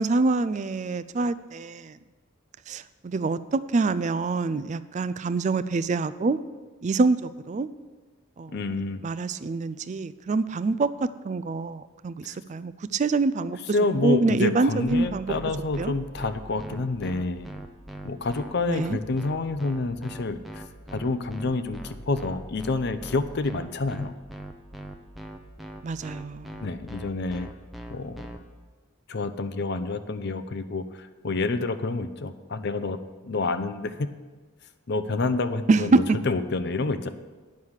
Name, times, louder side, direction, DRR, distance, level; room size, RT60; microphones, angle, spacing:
voice 1, 0.0-2.0 2.7-6.4 6.8-7.7 8.4-8.6 9.0-13.8 14.0-15.3 15.8-15.9 18.7-19.0 25.8-26.6 35.7-36.2, right 3 dB, 35° right, 15 dB, 0.3 m, -25 dB
voice 2, 8.5-9.0 12.3-12.4 13.7-17.5 18.0-20.6 20.9-24.1 26.6-27.5 27.9-28.3 29.1-33.0 33.2-34.1 34.9-35.9 36.3-37.1, left 3 dB, 55° left, 11 dB, 0.6 m, -28 dB
sound 1, 14.9-28.4, right 1 dB, ahead, 0.6 m, -40 dB
9.6 x 6.4 x 7.2 m, 1.3 s
head